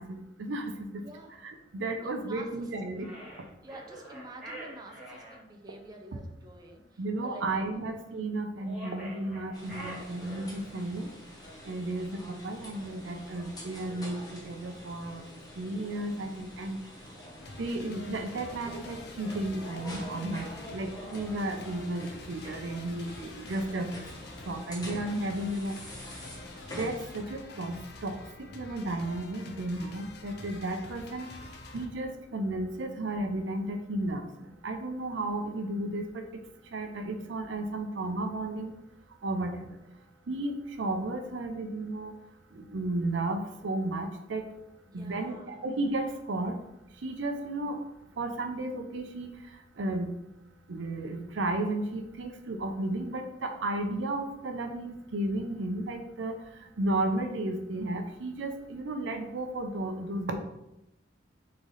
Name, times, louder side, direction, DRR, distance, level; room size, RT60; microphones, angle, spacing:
voice 1, 0.0-1.0 1.4-3.1 7.0-11.1 11.6-15.2 15.6-16.8 17.6-24.1 24.5-25.7 26.8-31.3 31.7-36.2 36.7-38.7 39.2-39.8 40.3-42.1 42.5-44.4 44.9-46.6 47.0-47.8 48.2-49.3 49.8-50.1 50.7-56.4 56.8-60.4, right 2 dB, 75° right, 6 dB, 0.5 m, -33 dB
voice 2, 0.9-1.3 2.0-2.7 3.6-7.8 10.0-10.1 11.6-12.0 21.2-21.5 40.0-40.1 44.9-45.5, right 2 dB, 20° right, 3 dB, 0.4 m, -49 dB
sound 1, 3.0-5.4 8.6-10.7, right 1 dB, 5° right, 1.1 m, -45 dB
sound 2, 9.5-27.2, left 1 dB, 20° left, 0.8 m, -46 dB
sound 3, 17.4-31.9, left 2 dB, 60° left, 0.5 m, -47 dB
3.7 x 3.2 x 4.0 m, 0.87 s
head